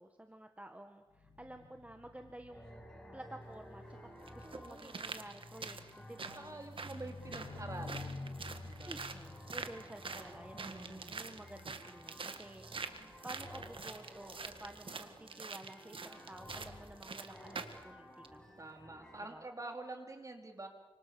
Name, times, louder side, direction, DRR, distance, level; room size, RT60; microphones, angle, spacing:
voice 1, 0.0-2.8 3.1-4.0 4.3-6.4 8.9-18.4 19.3-19.4, right 1 dB, 15° right, 5 dB, 1.8 m, -52 dB
sound 1, 1.1-12.7 13.5-13.8, left 2 dB, 85° left, 2.9 m, -51 dB
sound 2, 2.5-19.2, equal, 10° left, 7.3 m, -55 dB
sound 3, 3.4-3.5 4.3-17.8 18.2-18.3, right 4 dB, 70° right, 1.9 m, -46 dB
voice 2, 4.4-5.0 6.3-8.2 8.6-9.0 10.5-11.2 18.6-20.7, right 2 dB, 35° right, 4 dB, 4.1 m, -47 dB
30.0 x 26.5 x 7.1 m, 1.2 s
wide cardioid pair, 85°, 9 cm